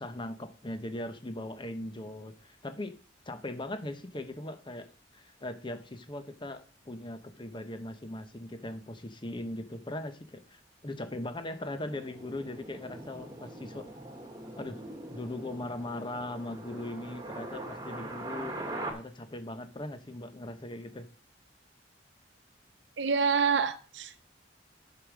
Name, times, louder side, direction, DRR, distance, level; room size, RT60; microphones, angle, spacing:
voice 1, 0.0-2.9 3.3-13.9 14.5-14.8 15.1-18.6 18.9-21.1, left 1 dB, 25° left, 0.9 m, -39 dB
sound 1, 11.6-18.9, right 1 dB, 20° right, 1.7 m, -42 dB
voice 2, 23.0-24.3, right 5 dB, 70° right, 0.7 m, -27 dB
8.5 x 5.1 x 6.3 m
head